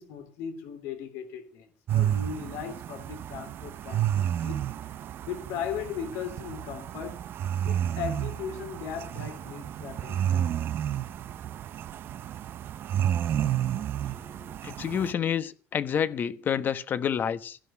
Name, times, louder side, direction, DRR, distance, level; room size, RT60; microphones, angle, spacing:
voice 1, 0.0-7.3 7.6-10.5, left 8 dB, 85° left, 3.2 m, -38 dB
sound 1, 1.9-15.1, right 10 dB, 55° right, 0.6 m, -31 dB
voice 2, 14.0-17.6, left 8 dB, 45° left, 1.1 m, -29 dB
16.5 x 5.7 x 10.0 m
cardioid pair, 110°, 5 cm